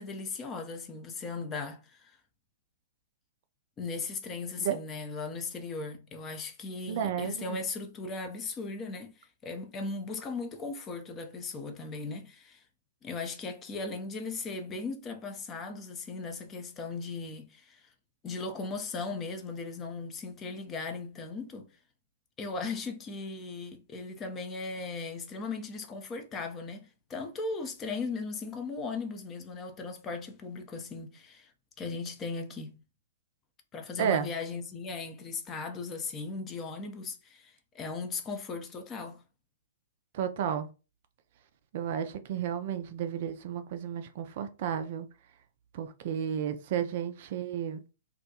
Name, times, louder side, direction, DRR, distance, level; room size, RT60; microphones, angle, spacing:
voice 1, 0.0-2.2 3.8-12.6 13.0-17.9 18.2-21.7 22.4-31.5 31.8-32.7 33.7-39.2, left 4 dB, 20° left, 0.5 m, -37 dB
voice 2, 6.9-7.6 34.0-34.3 40.1-40.7 41.7-45.1 45.7-47.8, right 9 dB, 45° right, 0.3 m, -32 dB
2.3 x 2.1 x 2.8 m
figure-of-eight pair, 115°, 0 cm